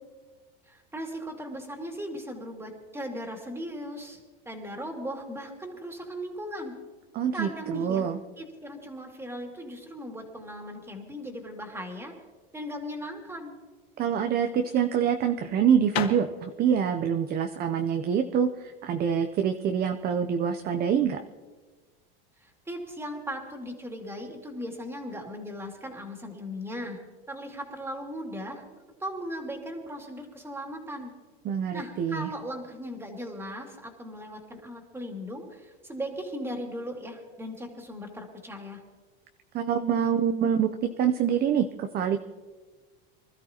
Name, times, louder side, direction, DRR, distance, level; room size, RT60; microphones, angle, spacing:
voice 1, 0.7-4.2 4.5-6.7 7.3-8.0 8.4-12.1 12.5-13.5 22.4-27.0 27.3-28.6 29.0-31.1 31.7-38.8, equal, 10° right, 2 dB, 2.4 m, -38 dB
voice 2, 7.1-8.2 14.0-21.2 31.4-32.3 39.5-42.2, right 8 dB, 30° right, 7 dB, 0.6 m, -26 dB
sound 1, 15.8-19.7, left 10 dB, 80° left, 1.6 m, -39 dB
24.5 x 13.5 x 2.9 m, 1.3 s
supercardioid pair, 130°, 30 cm